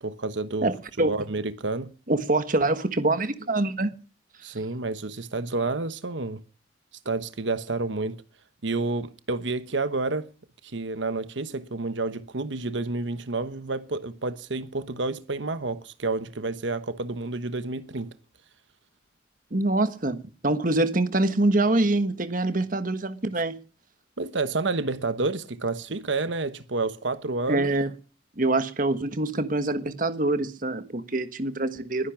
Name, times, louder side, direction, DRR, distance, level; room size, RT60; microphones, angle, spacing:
voice 1, 0.0-0.7 1.1-1.9 4.4-6.4 7.0-8.2 8.6-10.3 10.6-18.1 24.2-27.7, right 3 dB, 80° right, 1.1 m, -29 dB
voice 2, 0.6-1.1 2.1-3.9 19.5-23.6 27.5-27.9 28.4-32.1, right 2 dB, 45° right, 1.4 m, -25 dB
21.0 x 10.5 x 6.0 m
head